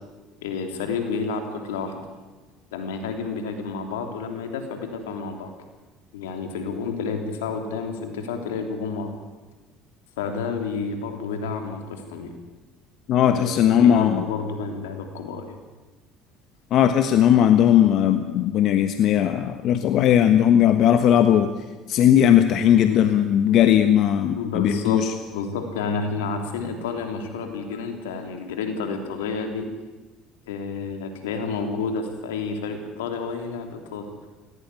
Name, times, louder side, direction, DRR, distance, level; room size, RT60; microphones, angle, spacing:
voice 1, 0.4-2.0 2.7-5.5 6.1-9.1 10.2-12.3 13.2-15.6 22.9-23.0 24.4-29.7 30.5-34.1, left 5 dB, 85° left, 5 dB, 3.2 m, -30 dB
voice 2, 13.1-14.2 16.7-21.5 21.9-25.1, left 10 dB, 60° left, 9 dB, 1.3 m, -18 dB
18.0 x 17.0 x 9.8 m, 1.3 s
hypercardioid pair, 70°, 0 cm